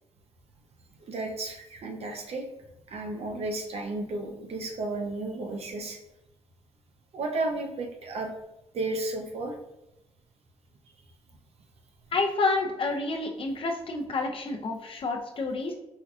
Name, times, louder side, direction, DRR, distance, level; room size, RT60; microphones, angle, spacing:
voice 1, 1.1-2.5 2.9-6.0 7.1-8.3 8.7-9.5, right 2 dB, 65° right, 2 dB, 0.5 m, -33 dB
voice 2, 12.1-15.7, left 3 dB, 50° left, 2 dB, 0.5 m, -29 dB
4.4 x 2.3 x 2.4 m, 0.91 s
cardioid pair, 80°, 11 cm